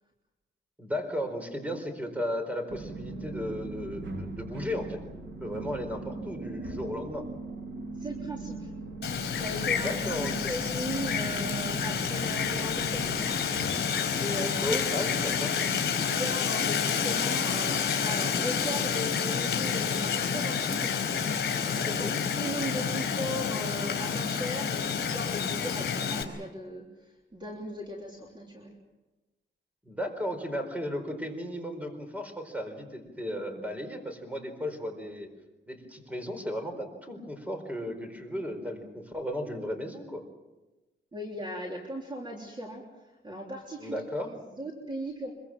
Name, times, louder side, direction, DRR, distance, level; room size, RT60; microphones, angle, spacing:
voice 1, 0.8-5.0 5.4-7.3 9.8-10.5 14.6-15.5 21.8-22.2 29.8-35.3 35.7-40.2 43.8-44.3, equal, 5° right, 5 dB, 4.4 m, -35 dB
sound 1, 2.7-15.4, right 3 dB, 70° right, 3.1 m, -40 dB
voice 2, 8.0-8.7 9.3-14.8 15.3-20.9 21.5-28.7 41.1-42.8 43.2-44.0 44.2-45.3, equal, 20° right, 0 dB, 3.6 m, -38 dB
Wind, 9.0-26.2, left 7 dB, 55° left, 4.7 m, -29 dB
25.5 x 23.0 x 7.5 m, 1.1 s
wide cardioid pair, 155°, 20 cm